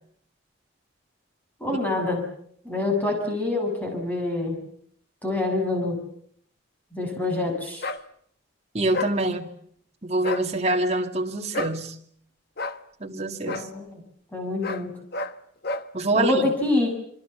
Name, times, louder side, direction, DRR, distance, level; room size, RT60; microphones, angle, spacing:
voice 1, 1.6-2.2 2.6-4.6 5.2-6.0 6.9-7.8 13.4-14.0 14.3-15.0 16.1-16.9, left 2 dB, 10° left, 2 dB, 7.4 m, -26 dB
sound 1, 7.8-8.0 8.9-9.2 10.2-10.5 11.5-11.8 12.6-12.8 13.5-13.7 14.6-14.9 15.1-15.4 15.6-15.9, left 3 dB, 50° left, 1.2 m, -30 dB
voice 2, 8.7-9.5 10.0-11.9 13.0-13.7 15.9-16.4, right 2 dB, 30° right, 3 dB, 2.3 m, -25 dB
27.5 x 24.0 x 7.2 m, 0.65 s
head